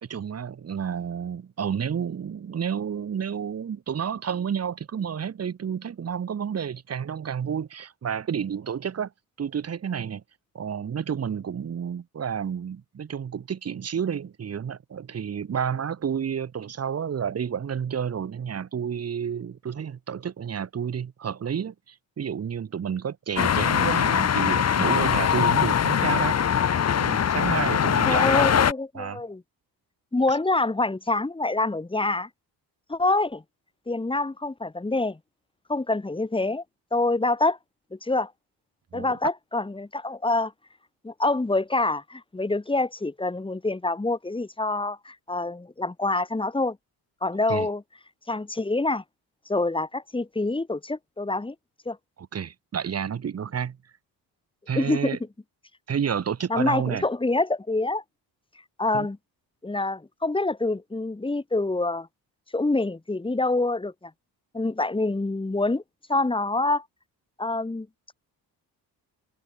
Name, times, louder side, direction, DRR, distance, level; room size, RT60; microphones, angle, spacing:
voice 1, 0.0-9.1 9.4-10.2 10.5-26.4 27.0-28.6 28.9-29.2 38.9-39.1 47.5-47.7 52.2-53.8 54.7-55.2 55.9-57.0 58.9-59.1, right 7 dB, 40° right, 2.3 m, -30 dB
sound 1, 23.4-28.7, left 8 dB, 40° left, 1.7 m, -22 dB
voice 2, 28.0-29.4 30.1-32.3 32.9-33.4 33.9-35.2 35.7-36.6 36.9-37.6 37.9-38.3 38.9-40.5 41.0-46.8 47.2-47.8 48.3-49.0 49.5-51.6 51.9-52.0 54.8-55.2 56.5-58.0 58.8-59.2 59.6-62.1 62.5-64.1 64.5-65.8 66.1-66.8 67.4-67.9, left 2 dB, 15° left, 3.8 m, -26 dB
cardioid pair, 120°, 38 cm